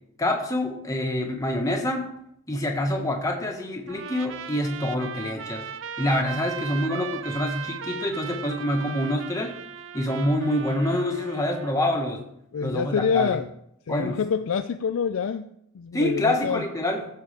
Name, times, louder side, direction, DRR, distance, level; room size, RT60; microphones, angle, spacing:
voice 1, 0.2-2.1 2.5-5.7 6.0-9.6 9.9-12.3 12.6-13.4 13.9-14.2 15.9-17.1, left 1 dB, 15° left, 1 dB, 1.4 m, -26 dB
Trumpet, 3.9-11.8, right 7 dB, 55° right, 0.4 m, -37 dB
voice 2, 12.5-13.5 13.9-16.6, left 6 dB, 70° left, 8 dB, 0.4 m, -26 dB
16.0 x 6.9 x 3.4 m, 0.76 s
head